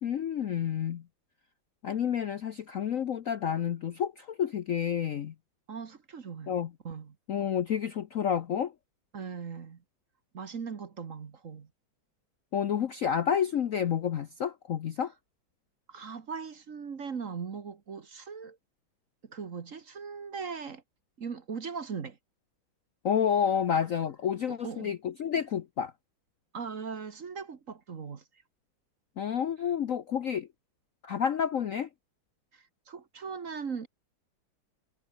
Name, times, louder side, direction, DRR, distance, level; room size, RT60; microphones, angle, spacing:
voice 1, 0.0-1.0 1.8-5.3 6.5-6.7 7.3-8.7 12.5-15.1 23.0-25.9 29.2-30.5 31.0-31.9, left 8 dB, 55° left, 0.9 m, -29 dB
voice 2, 5.7-6.5 6.8-7.2 9.1-9.8 10.3-11.7 15.9-18.6 19.2-20.8 21.2-22.2 24.5-24.9 26.5-28.2 32.5-33.9, right 6 dB, 45° right, 1.6 m, -39 dB
omnidirectional pair, 2.2 m